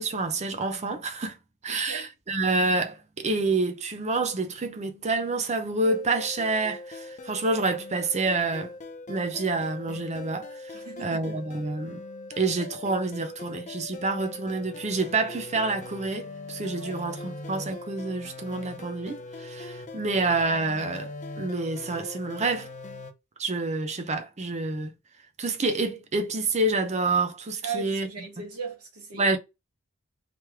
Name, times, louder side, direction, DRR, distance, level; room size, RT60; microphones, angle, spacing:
voice 1, 0.0-1.4 1.6-8.7 9.1-12.0 12.4-22.7 23.4-24.9 25.4-28.1 29.1-29.4, right 3 dB, 30° right, 0.6 m, -28 dB
voice 2, 1.7-2.1 10.7-11.5 16.7-17.0 27.6-29.2, right 5 dB, 85° right, 1.3 m, -38 dB
sound 1, 5.8-23.1, left 2 dB, 35° left, 0.6 m, -41 dB
3.2 x 3.1 x 3.6 m
head